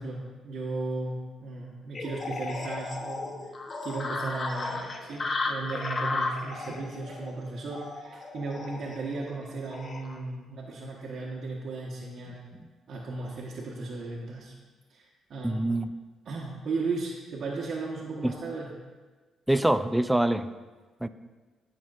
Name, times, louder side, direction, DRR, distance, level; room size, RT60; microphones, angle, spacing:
voice 1, 0.0-12.4 12.9-14.5 14.9-15.6 16.2-18.7, right 3 dB, 60° right, -3 dB, 1.1 m, -36 dB
sound 1, 1.9-10.2, left 3 dB, 40° left, 0.9 m, -35 dB
voice 2, 15.4-15.9 18.2-18.4 19.5-20.5 21.0-21.1, right 1 dB, 5° right, 12 dB, 0.4 m, -25 dB
13.5 x 5.9 x 2.5 m, 1.3 s
cardioid pair, 90°, 0 cm